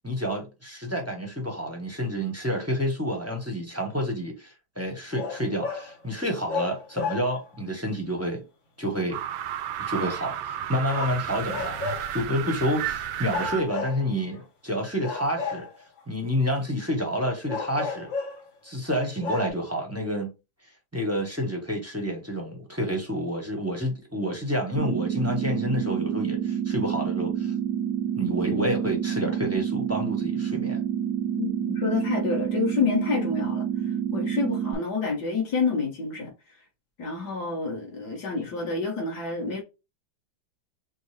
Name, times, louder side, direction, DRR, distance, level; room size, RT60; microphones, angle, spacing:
voice 1, 0.0-8.4 8.8-9.2 9.8-11.8 12.1-15.7 16.1-18.1 18.6-20.3 20.9-27.5 28.1-30.8, equal, 15° right, 0.7 m, -29 dB
sound 1, 5.1-5.9 6.5-7.6 10.9-12.2 13.3-14.4 15.0-16.0 17.5-18.5 18.9-19.0 19.2-19.5, left 4 dB, 75° left, 2.1 m, -33 dB
sound 2, 9.1-13.6, right 10 dB, 85° right, 1.4 m, -32 dB
sound 3, 24.7-34.7, right 9 dB, 70° right, 1.1 m, -28 dB
voice 2, 31.4-33.7 34.1-36.3 37.0-39.6, left 4 dB, 55° left, 1.9 m, -28 dB
6.1 x 2.2 x 3.2 m
omnidirectional pair, 2.1 m